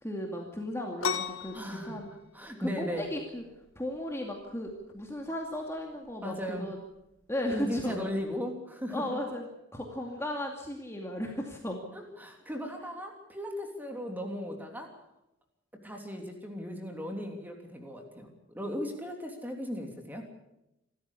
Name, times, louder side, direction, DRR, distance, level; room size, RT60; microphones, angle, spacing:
voice 1, 0.0-2.1 2.6-3.4 3.8-6.8 7.3-8.1 8.9-11.8, left 1 dB, 10° left, 0 dB, 2.4 m, -35 dB
sound 1, 1.0-8.4, left 6 dB, 80° left, 1.5 m, -40 dB
voice 2, 1.5-2.0 2.3-3.1 6.2-6.7 7.5-9.2 11.9-14.9 15.8-20.3, equal, 10° right, 3 dB, 3.1 m, -37 dB
26.5 x 13.5 x 8.4 m, 0.89 s
head